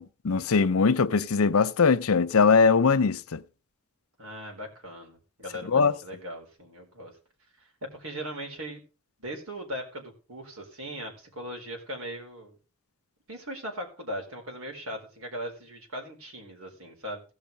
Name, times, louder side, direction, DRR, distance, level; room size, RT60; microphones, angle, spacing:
voice 1, 0.0-3.4 5.7-5.9, left 5 dB, 75° left, 0.6 m, -21 dB
voice 2, 4.2-7.1 7.6-8.8 9.2-12.6 13.3-17.2, equal, 75° right, 4.4 m, -39 dB
16.5 x 5.7 x 5.2 m
head